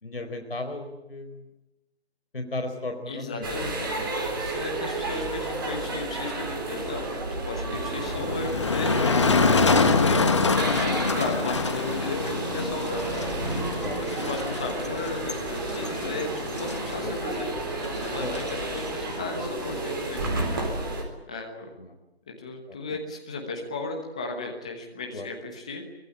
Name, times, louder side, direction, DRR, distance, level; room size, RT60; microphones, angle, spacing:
voice 1, 0.0-1.4 2.3-3.7 4.0-4.1 7.7-7.8 13.8-14.0 17.0-17.2 18.1-18.5 21.8-21.9 22.7-22.8 25.1-25.3, left 2 dB, 60° left, 5 dB, 4.5 m, -35 dB
voice 2, 3.1-4.0 4.3-9.7 10.0-10.3 10.7-13.3 14.0-17.5 18.0-20.7 21.3-21.7 22.3-25.8, left 3 dB, 5° left, 2 dB, 1.1 m, -35 dB
sound 1, 3.4-21.0, right 2 dB, 20° right, 3.8 m, -32 dB
Motor vehicle (road), 8.0-20.7, left 4 dB, 25° left, 1.6 m, -27 dB
24.0 x 21.0 x 9.8 m, 0.96 s
figure-of-eight pair, 165°, 32 cm